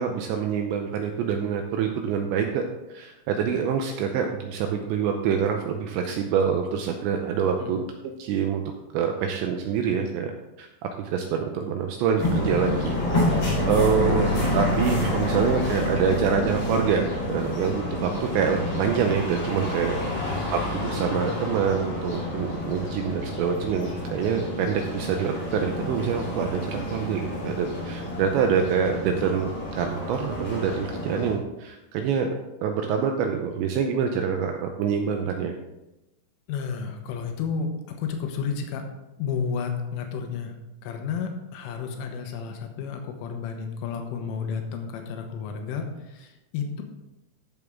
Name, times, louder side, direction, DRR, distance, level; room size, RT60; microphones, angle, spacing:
voice 1, 0.0-8.6 8.9-10.3 10.6-10.7 11.0-13.0 13.3-20.0 20.2-32.3 32.6-35.5, right 7 dB, 85° right, 4 dB, 2.7 m, -26 dB
sound 1, 12.2-31.3, left 1 dB, 35° left, 4.6 m, -28 dB
voice 2, 36.5-38.9 39.2-40.6 40.8-46.8, left 6 dB, 90° left, 4 dB, 3.6 m, -31 dB
14.0 x 7.0 x 3.6 m, 0.97 s
omnidirectional pair, 5.7 m